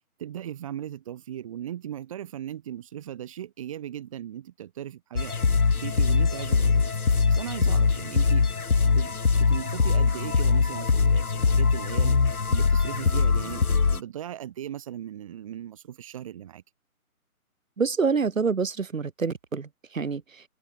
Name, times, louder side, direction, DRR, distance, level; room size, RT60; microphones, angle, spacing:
voice 1, 0.2-5.4 5.8-8.5 8.8-9.1 9.4-12.2 12.5-16.6, right 11 dB, 25° right, 6.0 m, -37 dB
sound 1, 5.2-14.0, left 5 dB, 80° left, 7.3 m, -22 dB
voice 2, 17.8-20.5, right 5 dB, 60° right, 6.3 m, -27 dB
hypercardioid pair, 180°, 43 cm